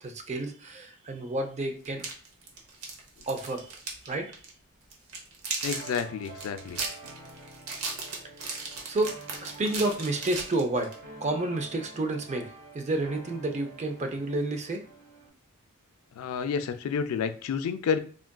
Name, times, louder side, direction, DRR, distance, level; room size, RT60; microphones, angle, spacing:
voice 1, 0.0-2.1 3.3-3.7 4.0-4.4 8.4-9.2 9.4-10.9 11.2-14.8, right 2 dB, 30° right, 5 dB, 0.4 m, -30 dB
sound 1, 1.8-4.1 4.3-4.5 4.9-11.0, right 4 dB, 70° right, 0.8 m, -36 dB
voice 2, 5.6-6.8 16.2-18.0, left 6 dB, 70° left, 10 dB, 0.3 m, -30 dB
sound 2, 5.6-15.3, right 3 dB, 50° right, 1.1 m, -48 dB
3.6 x 2.4 x 2.2 m, 0.41 s
head